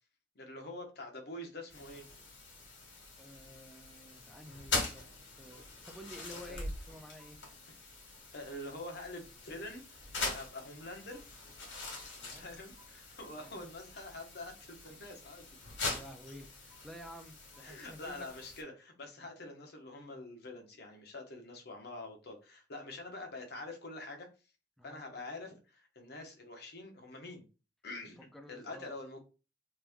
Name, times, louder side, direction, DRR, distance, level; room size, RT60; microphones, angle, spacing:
voice 1, 0.3-2.1 6.2-6.6 8.3-11.2 11.7-15.5 17.6-24.3 24.8-27.5 27.8-29.2, left 2 dB, 60° left, 0.9 m, -46 dB
sound 1, 1.7-18.6, left 3 dB, 85° left, 1.5 m, -43 dB
voice 2, 3.2-7.4 12.2-12.5 13.2-13.6 15.8-18.3 19.2-19.3 24.8-25.0 28.3-29.0, equal, ahead, 0.5 m, -51 dB
3.1 x 2.6 x 3.4 m
head